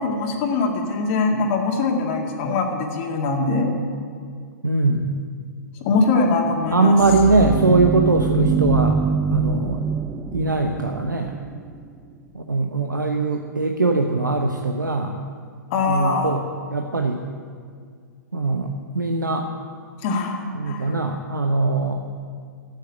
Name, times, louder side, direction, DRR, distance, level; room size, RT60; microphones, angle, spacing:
voice 1, 0.0-3.7 5.8-7.0 12.9-13.0 15.7-16.4 20.0-20.9, left 3 dB, 45° left, 0 dB, 2.1 m, -22 dB
voice 2, 4.6-5.2 6.7-9.0 9.3-9.8 10.3-11.3 12.3-15.2 15.8-16.4 16.7-17.2 18.3-19.5 20.5-22.0, right 3 dB, 90° right, 3 dB, 1.0 m, -21 dB
sound 1, 6.4-11.9, right 6 dB, 10° right, 0.4 m, -25 dB
12.5 x 8.9 x 9.6 m, 2.1 s
figure-of-eight pair, 110°, 10 cm